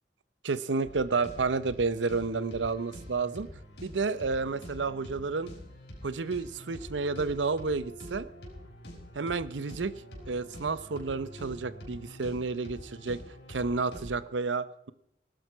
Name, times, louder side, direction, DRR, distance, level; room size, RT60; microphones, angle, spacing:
voice 1, 0.4-5.5 6.0-8.3 9.1-9.9 10.3-13.2 13.5-14.9, right 4 dB, 85° right, 16 dB, 0.7 m, -31 dB
sound 1, 0.8-14.2, equal, 65° left, 5.7 m, -46 dB
18.5 x 12.0 x 5.6 m, 0.76 s
head